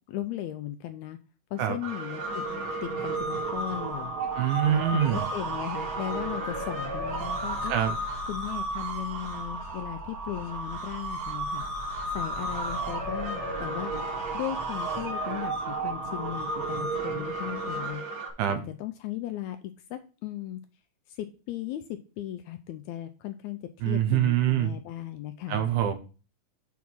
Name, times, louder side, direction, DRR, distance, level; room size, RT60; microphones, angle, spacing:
voice 1, 0.1-1.2 1.5-2.4 2.8-4.1 4.7-7.8 8.3-11.7 12.1-13.9 14.3-18.0 18.5-20.6 21.1-23.6 23.9-25.7, left 13 dB, 80° left, 1.7 m, -37 dB
sound 1, 1.8-18.3, right 2 dB, 55° right, 2.8 m, -33 dB
voice 2, 4.4-5.3 7.7-8.0 18.4-18.6 23.8-24.7 25.5-25.9, right 11 dB, 80° right, 2.4 m, -25 dB
7.1 x 3.6 x 6.0 m
omnidirectional pair, 3.6 m